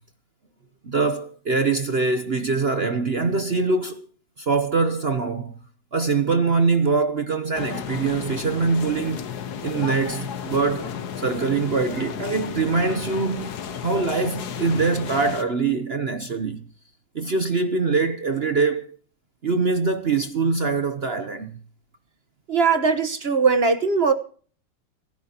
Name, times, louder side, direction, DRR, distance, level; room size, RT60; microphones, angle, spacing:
voice 1, 0.8-4.1 4.4-5.6 5.9-9.2 9.6-13.6 13.8-16.6 17.1-19.0 19.4-21.6, right 4 dB, 55° right, 0.7 m, -23 dB
sound 1, 7.5-15.4, left 7 dB, 55° left, 1.5 m, -33 dB
voice 2, 22.5-24.1, right 5 dB, 35° right, 1.2 m, -20 dB
28.5 x 10.5 x 2.9 m
omnidirectional pair, 2.3 m